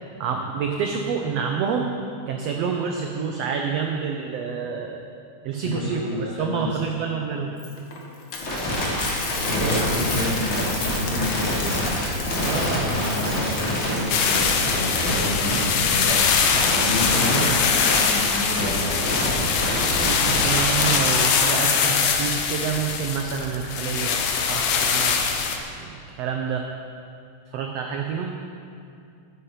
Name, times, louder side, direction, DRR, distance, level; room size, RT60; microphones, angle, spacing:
voice 1, 0.2-1.9 2.3-5.0 5.4-7.5 9.6-9.8 12.4-12.9 17.1-17.5 20.0-25.4 25.8-26.7 27.5-28.4, right 6 dB, 80° right, 3 dB, 1.4 m, -28 dB
voice 2, 5.6-6.8 9.4-11.8 12.6-16.2 16.7-19.0, left 1 dB, 20° left, -7 dB, 1.7 m, -30 dB
Coin (dropping), 7.6-15.0, left 3 dB, 50° left, 1.4 m, -31 dB
sound 1, 8.4-20.9, equal, 65° left, 4.2 m, -27 dB
sound 2, 14.1-25.6, left 6 dB, 90° left, 2.5 m, -22 dB
11.0 x 9.9 x 5.7 m, 2.4 s
omnidirectional pair, 3.7 m